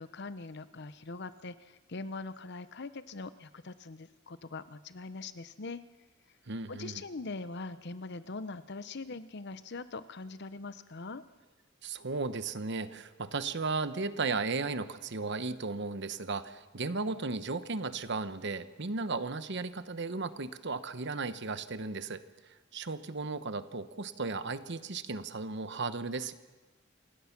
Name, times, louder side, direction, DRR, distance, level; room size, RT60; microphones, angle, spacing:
voice 1, 0.0-5.8 6.7-11.2, left 3 dB, 60° left, 13 dB, 0.8 m, -42 dB
voice 2, 6.5-7.0 11.8-22.2 22.7-26.3, right 3 dB, 60° right, 12 dB, 1.0 m, -35 dB
28.0 x 17.0 x 6.0 m, 1.2 s
head